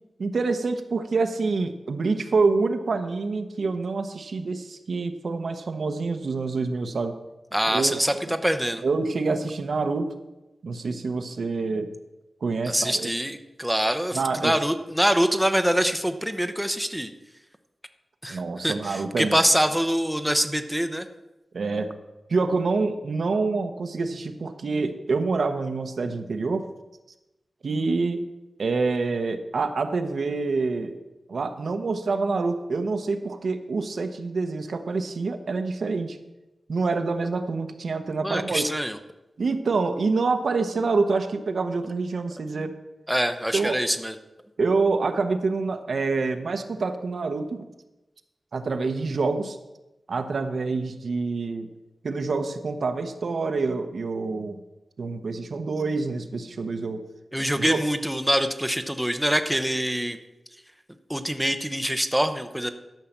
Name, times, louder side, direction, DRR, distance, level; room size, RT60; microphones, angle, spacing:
voice 1, 0.2-7.1 7.7-8.4 8.8-10.1 10.6-11.9 12.4-13.1 14.1-14.5 18.3-19.4 21.5-21.9 22.3-26.7 27.6-28.2 28.6-31.0 31.3-36.2 36.7-38.7 39.4-42.7 43.5-43.8 44.6-47.6 48.5-49.6 50.1-51.7 52.0-54.6 55.0-57.0 57.6-57.8, right 4 dB, 70° right, 7 dB, 1.0 m, -26 dB
voice 2, 7.5-8.8 12.6-17.1 18.2-21.1 38.2-39.0 43.1-44.2 57.3-60.2 61.1-62.7, equal, 5° right, 7 dB, 0.7 m, -24 dB
12.0 x 5.7 x 7.3 m, 1.0 s
wide cardioid pair, 95°, 0 cm